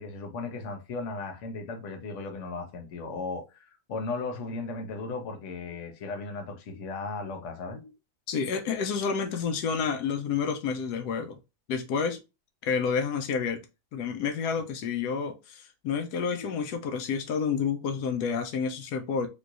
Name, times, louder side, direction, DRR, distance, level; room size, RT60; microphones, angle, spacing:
voice 1, 0.0-7.8, left 3 dB, 55° left, 1.1 m, -36 dB
voice 2, 8.3-11.4 11.7-12.2 12.6-13.6 13.9-19.3, left 6 dB, 85° left, 1.2 m, -29 dB
3.7 x 2.9 x 2.4 m
omnidirectional pair, 1.7 m